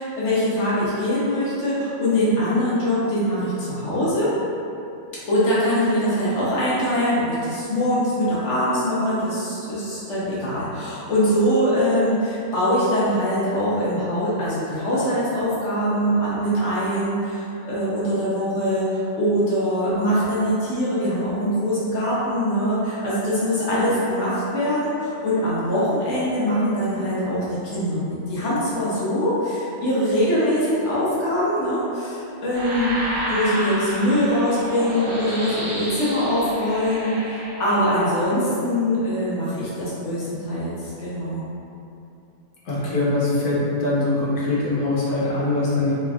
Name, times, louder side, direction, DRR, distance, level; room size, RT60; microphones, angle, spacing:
voice 1, 0.0-4.4 5.3-33.0 33.3-41.4, equal, 55° left, -9 dB, 1.0 m, -23 dB
sound 1, 32.5-38.2, right 1 dB, 45° right, 0.6 m, -30 dB
voice 2, 42.7-45.9, left 2 dB, 75° left, -6 dB, 1.3 m, -22 dB
3.3 x 2.9 x 2.3 m, 2.7 s
omnidirectional pair, 1.6 m